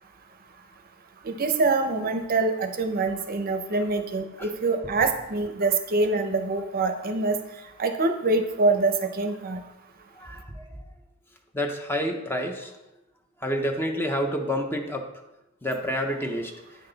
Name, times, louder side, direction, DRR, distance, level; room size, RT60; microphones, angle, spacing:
voice 1, 1.2-7.4 7.8-9.6, right 3 dB, 40° right, 7 dB, 0.6 m, -25 dB
voice 2, 10.2-10.7 11.5-12.7 13.4-15.1 15.6-16.5, equal, 10° left, 4 dB, 0.6 m, -28 dB
8.6 x 5.9 x 3.9 m, 0.96 s
head